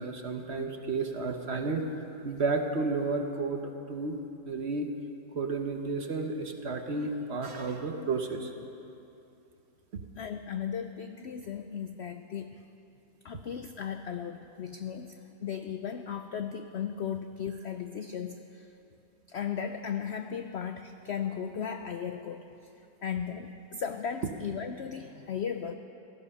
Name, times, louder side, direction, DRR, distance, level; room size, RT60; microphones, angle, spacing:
voice 1, 0.0-1.8 2.2-4.2 4.5-4.9 5.3-8.5, right 3 dB, 45° right, 5 dB, 1.1 m, -32 dB
voice 2, 10.1-12.6 13.2-18.7 19.3-22.7 23.0-25.7, left 7 dB, 75° left, 7 dB, 0.6 m, -36 dB
18.0 x 13.5 x 5.5 m, 2.8 s
omnidirectional pair, 1.7 m